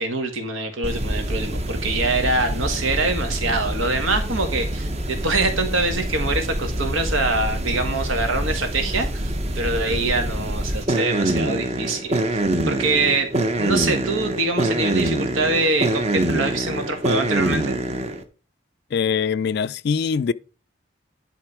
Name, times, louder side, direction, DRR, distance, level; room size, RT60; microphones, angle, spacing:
voice 1, 0.0-13.3 13.6-17.8, right 3 dB, 85° right, 1.7 m, -24 dB
sound 1, 0.8-18.2, right 1 dB, 30° right, 0.8 m, -25 dB
voice 2, 18.9-20.3, left 6 dB, 55° left, 0.3 m, -22 dB
10.5 x 3.7 x 4.7 m
head